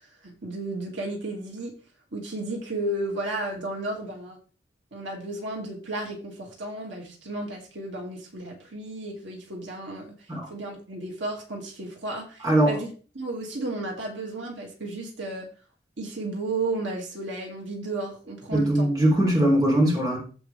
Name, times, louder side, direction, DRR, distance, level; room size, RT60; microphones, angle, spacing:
voice 1, 0.2-1.7 2.1-4.4 4.9-10.2 10.5-15.5 16.0-18.9, right 2 dB, 80° right, 1 dB, 2.4 m, -33 dB
voice 2, 12.4-12.8 18.5-20.2, right 1 dB, 20° right, -2 dB, 3.5 m, -21 dB
15.0 x 5.0 x 3.4 m, 0.37 s
head